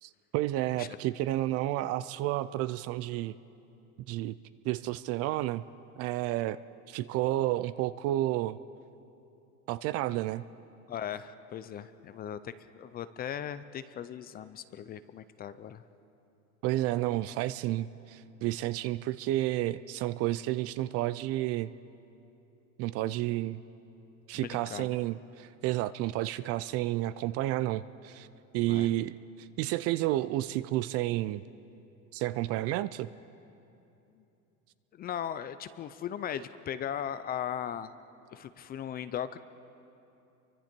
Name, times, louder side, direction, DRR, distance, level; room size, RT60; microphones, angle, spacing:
voice 1, 0.0-3.3 4.1-4.4 4.7-5.6 6.0-6.6 6.9-8.6 9.7-10.4 16.6-21.7 22.8-23.6 24.3-28.3 28.5-31.4 32.1-33.1, right 15 dB, 40° right, 15 dB, 0.4 m, -31 dB
voice 2, 10.9-15.8 24.3-25.0 28.7-28.9 34.9-37.9 38.3-39.4, left 9 dB, 25° left, 13 dB, 0.4 m, -38 dB
29.5 x 24.0 x 4.5 m, 2.8 s
supercardioid pair, 135°, 41 cm